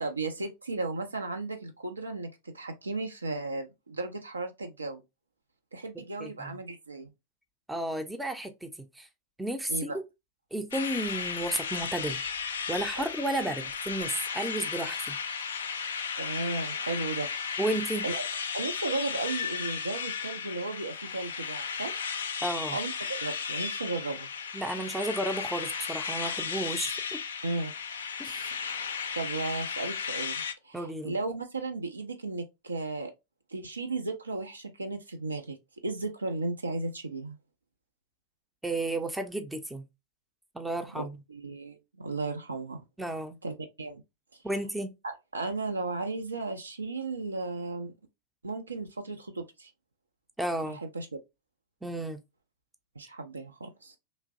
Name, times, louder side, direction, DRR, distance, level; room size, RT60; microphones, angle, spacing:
voice 1, 0.0-5.0 5.7-7.1 9.7-10.0 16.2-17.3 18.0-18.2 18.5-21.9 22.7-24.3 27.4-27.7 28.5-28.8 29.2-33.1 33.5-35.6 35.8-37.4 41.0-41.1 41.3-42.8 43.4-44.0 44.3-44.4 45.0-47.9 48.4-49.7 50.7-51.1 53.0-54.0, right 3 dB, 80° right, 0.4 m, -35 dB
voice 2, 6.2-6.6 7.7-9.1 9.4-10.0 10.5-12.2 12.7-15.2 17.6-18.0 22.4-22.8 24.5-27.2 28.2-28.5 30.7-31.2 38.6-39.8 40.5-41.2 43.0-43.4 44.4-44.9 50.4-50.8 51.8-52.2, right 1 dB, 5° right, 0.5 m, -33 dB
sound 1, 10.7-30.5, left 6 dB, 65° left, 0.4 m, -35 dB
3.0 x 2.5 x 2.4 m
figure-of-eight pair, 90°, 0 cm